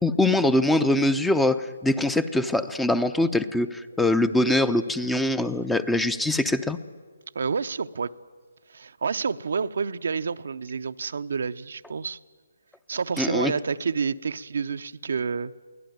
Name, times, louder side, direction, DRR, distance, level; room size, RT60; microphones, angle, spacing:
voice 1, 0.0-6.8 13.2-13.5, left 1 dB, 5° left, 14 dB, 0.6 m, -23 dB
voice 2, 7.3-8.1 8.7-12.2 12.9-15.5, right 5 dB, 65° right, 11 dB, 0.7 m, -29 dB
23.5 x 17.0 x 9.3 m, 1.5 s
figure-of-eight pair, 145°, 0 cm